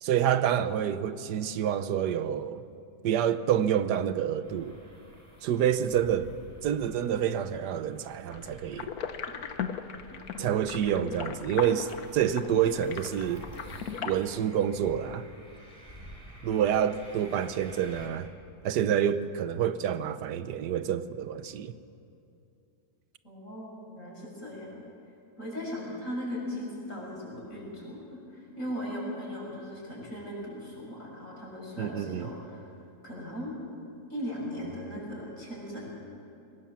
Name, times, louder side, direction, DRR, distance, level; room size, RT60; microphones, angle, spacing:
voice 1, 0.0-2.6 3.0-4.8 5.4-6.3 6.6-8.9 10.4-13.4 14.0-15.2 16.4-18.3 18.6-21.7 31.8-32.3, right 9 dB, 85° right, 1.4 m, -28 dB
sound 1, 4.4-18.1, right 1 dB, 20° right, 4.0 m, -51 dB
sound 2, 8.3-14.1, left 7 dB, 65° left, 1.5 m, -38 dB
voice 2, 23.2-24.8 25.4-32.6 33.0-33.5 34.1-36.0, equal, 50° left, 6.9 m, -38 dB
22.0 x 19.0 x 7.5 m
omnidirectional pair, 1.7 m